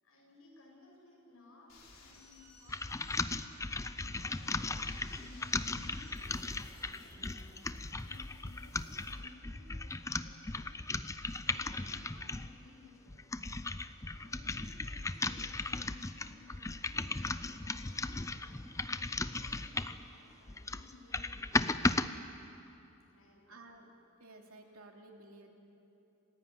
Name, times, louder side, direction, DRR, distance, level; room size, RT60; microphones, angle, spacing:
voice 1, 0.0-6.3 7.1-10.9 11.3-13.3 14.1-22.0 23.1-23.6, left 2 dB, 75° left, -2 dB, 7.7 m, -59 dB
sound 1, 1.7-9.1, left 2 dB, 60° left, 4.7 m, -58 dB
sound 2, 2.7-12.5 13.1-20.1 20.5-22.1, left 3 dB, 15° left, 0.5 m, -36 dB
voice 2, 23.5-23.9 24.2-25.5, right 2 dB, 75° right, 2 dB, 2.8 m, -54 dB
27.0 x 16.0 x 9.4 m, 2.9 s
head